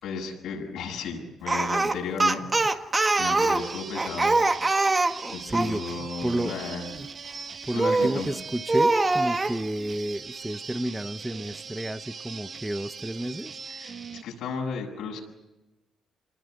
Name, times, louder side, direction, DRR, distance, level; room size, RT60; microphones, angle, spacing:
voice 1, 0.0-2.8 3.2-4.4 5.3-6.9 7.7-8.3 13.7-14.0 14.2-15.2, left 5 dB, 85° left, 7.1 m, -34 dB
Speech, 1.5-5.8 7.8-8.2 8.7-9.6, right 2 dB, 25° right, 1.6 m, -23 dB
sound 1, 3.5-14.2, right 5 dB, 45° right, 1.4 m, -41 dB
voice 2, 5.4-6.6 6.9-7.1 7.6-13.5, right 1 dB, 5° right, 0.8 m, -31 dB
27.0 x 20.0 x 7.9 m
cardioid pair, 90°, 0 cm